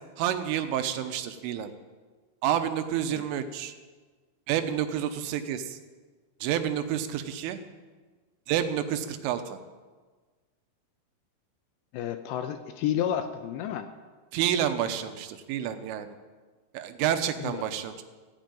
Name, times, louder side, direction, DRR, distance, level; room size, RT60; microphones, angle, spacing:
voice 1, 0.2-1.7 2.4-3.7 4.5-5.8 6.4-7.6 8.5-9.6 14.3-16.1 16.7-18.0, right 10 dB, 85° right, 9 dB, 3.5 m, -29 dB
voice 2, 11.9-13.9 17.4-17.6, left 10 dB, 80° left, 8 dB, 2.7 m, -31 dB
15.0 x 9.2 x 8.9 m, 1.4 s
omnidirectional pair, 5.6 m